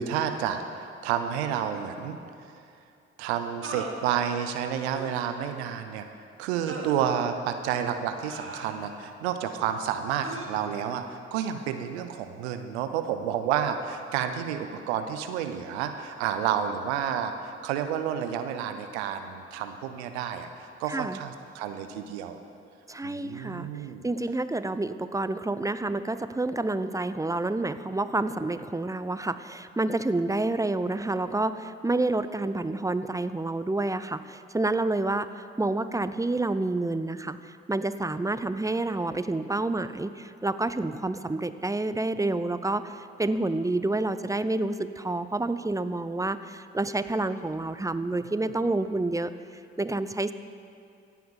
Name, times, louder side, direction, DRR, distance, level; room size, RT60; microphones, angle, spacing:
voice 1, 0.0-2.2 3.2-6.1 6.4-22.4 23.0-24.0, right 8 dB, 90° right, 8 dB, 0.6 m, -30 dB
sound 1, 1.7-1.9 3.6-4.0 4.9-5.2 6.7-7.0 8.2-9.0 10.2-10.5, right 3 dB, 40° right, 2.0 m, -39 dB
voice 2, 20.9-21.2 22.9-23.7 24.0-49.3 49.8-50.3, right 2 dB, 10° right, 12 dB, 0.6 m, -29 dB
16.5 x 5.8 x 7.1 m, 2.5 s
hypercardioid pair, 40°, 32 cm